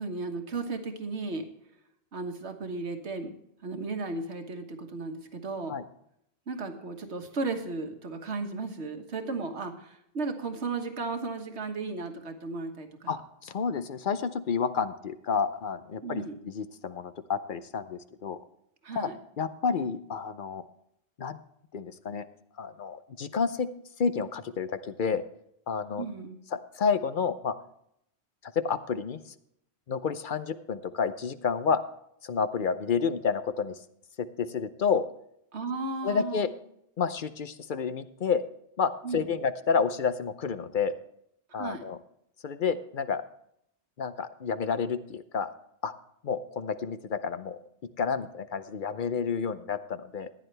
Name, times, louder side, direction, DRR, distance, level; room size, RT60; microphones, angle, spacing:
voice 1, 0.0-1.5 2.1-3.3 3.6-5.7 6.5-13.2 16.0-16.3 18.8-19.2 26.0-26.4 35.5-36.5 39.0-39.3 41.5-41.8, right 3 dB, 80° right, 5 dB, 1.7 m, -35 dB
voice 2, 13.1-18.4 19.0-19.1 19.4-20.6 21.2-21.4 21.7-22.3 22.6-23.7 24.0-25.2 25.7-26.1 26.5-27.5 28.4-29.3 29.9-31.8 32.2-33.8 34.2-35.1 36.0-36.5 37.0-38.4 38.8-41.0 41.5-42.0 42.4-43.2 44.0-45.5 45.8-45.9 46.2-47.6 48.0-50.3, left 6 dB, 55° left, 12 dB, 0.7 m, -30 dB
15.0 x 10.0 x 3.3 m, 0.73 s
omnidirectional pair, 1.1 m